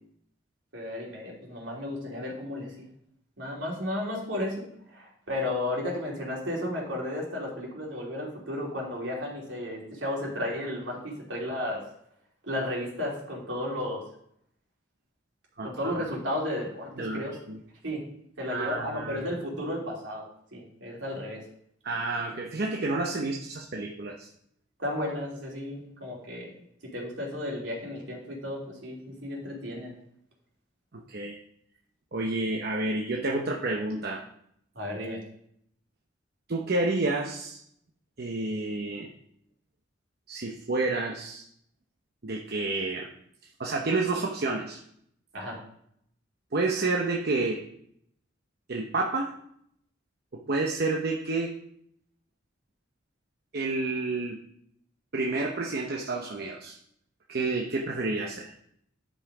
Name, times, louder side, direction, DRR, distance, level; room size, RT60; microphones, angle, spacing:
voice 1, 0.7-2.9 3.4-4.6 4.9-11.8 12.5-14.0 15.6-17.3 17.8-18.0 18.4-21.4 24.8-26.5 26.8-29.9 34.7-35.2 45.3-45.6, left 1 dB, 75° right, -3 dB, 3.0 m, -33 dB
voice 2, 15.6-15.9 17.0-17.6 18.5-19.2 21.8-24.3 30.9-31.4 32.1-34.2 36.5-37.6 38.2-39.1 40.3-41.4 42.2-43.1 43.6-44.8 46.5-47.6 48.7-49.3 50.3-51.5 53.5-54.4 55.1-56.8 57.3-58.5, right 2 dB, 55° right, 0 dB, 0.8 m, -29 dB
10.0 x 5.7 x 4.8 m, 0.71 s
head